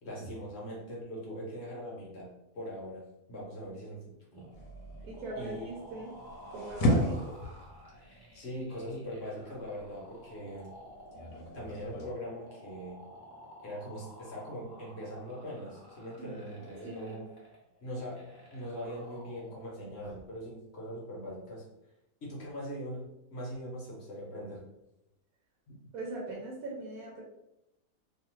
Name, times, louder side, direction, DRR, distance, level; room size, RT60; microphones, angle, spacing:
voice 1, 0.0-3.0 3.3-4.0 4.3-4.5 5.4-5.7 8.0-10.8 11.5-13.0 13.6-17.2 17.8-18.2 18.5-21.7 22.2-24.7 25.7-25.8, equal, 55° left, -4 dB, 1.0 m, -41 dB
sound 1, 4.3-20.3, equal, 25° left, 0.5 m, -52 dB
sound 2, 4.5-12.1, left 1 dB, 80° left, 1.0 m, -35 dB
voice 2, 5.0-6.1 6.5-7.4 16.2-17.3 25.9-27.2, right 2 dB, 80° right, -2 dB, 1.1 m, -40 dB
2.7 x 2.4 x 3.0 m, 0.86 s
omnidirectional pair, 1.5 m